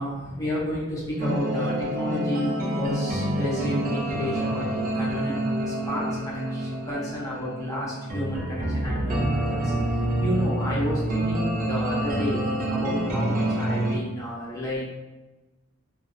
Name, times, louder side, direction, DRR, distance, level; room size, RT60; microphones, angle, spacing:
voice 1, 0.0-14.9, equal, 15° left, -7 dB, 0.7 m, -31 dB
sound 1, 1.2-14.0, right 1 dB, 40° right, 0.5 m, -27 dB
2.5 x 2.1 x 2.5 m, 1.1 s
head